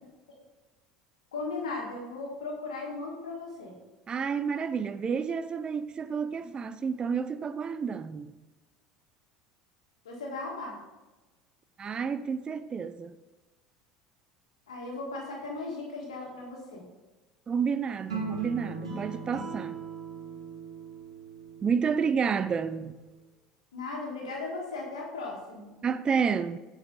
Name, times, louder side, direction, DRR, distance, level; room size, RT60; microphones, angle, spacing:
voice 1, 1.3-3.7 10.0-10.8 14.7-16.8 23.7-25.8, left 3 dB, 75° left, 1.6 m, -37 dB
voice 2, 4.1-8.3 11.8-13.2 17.5-19.8 21.6-22.9 25.8-26.6, right 6 dB, 25° right, 0.4 m, -30 dB
sound 1, 18.1-22.5, right 4 dB, 75° right, 1.5 m, -39 dB
8.6 x 4.8 x 3.9 m
figure-of-eight pair, 70°, 3 cm